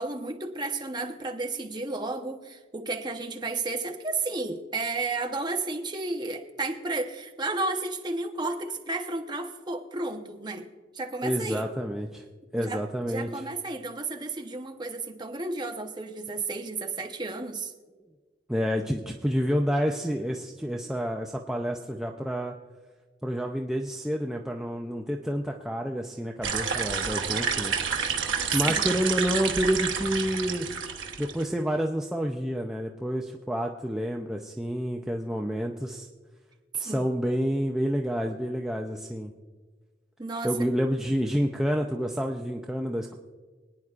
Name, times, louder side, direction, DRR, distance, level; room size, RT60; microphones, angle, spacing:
voice 1, 0.0-10.6 10.9-11.7 12.6-12.8 13.1-17.7 28.6-28.9 36.8-37.0 40.2-40.5, right 3 dB, 25° right, 3 dB, 0.9 m, -32 dB
voice 2, 11.2-12.2 12.5-13.5 18.5-22.5 23.2-27.8 28.5-30.7 31.2-36.1 36.7-39.3 40.4-43.2, equal, 5° right, 1 dB, 0.5 m, -29 dB
sound 1, 26.4-31.4, right 6 dB, 80° right, 1.0 m, -29 dB
25.0 x 9.5 x 2.5 m, 1.4 s
head